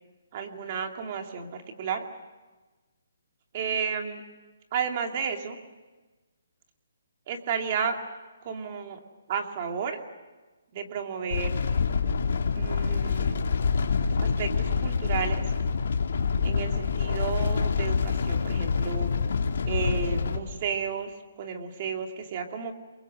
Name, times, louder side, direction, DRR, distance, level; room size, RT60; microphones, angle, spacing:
voice 1, 0.3-2.0 3.5-4.2 4.7-5.6 7.3-8.0 8.4-9.0 9.3-10.0 10.7-11.6 12.5-13.4 14.2-15.4 16.4-19.1 19.7-22.7, right 6 dB, 30° right, 4 dB, 2.6 m, -32 dB
sound 1, 11.3-20.4, left 5 dB, 55° left, 3.1 m, -26 dB
29.5 x 23.0 x 7.7 m, 1.2 s
hypercardioid pair, 175°, 0 cm